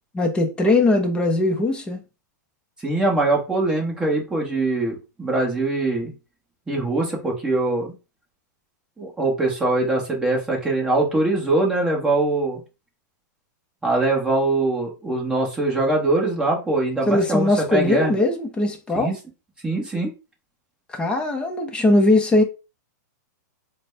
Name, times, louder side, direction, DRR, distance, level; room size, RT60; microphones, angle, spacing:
voice 1, 0.1-2.0 17.1-19.1 20.9-22.4, left 2 dB, 10° left, 0.6 m, -20 dB
voice 2, 2.8-6.1 6.7-7.9 9.0-12.6 13.8-18.1 18.9-19.1 19.6-20.1, right 2 dB, 10° right, 1.1 m, -22 dB
4.0 x 2.1 x 3.2 m
hypercardioid pair, 145°, 10 cm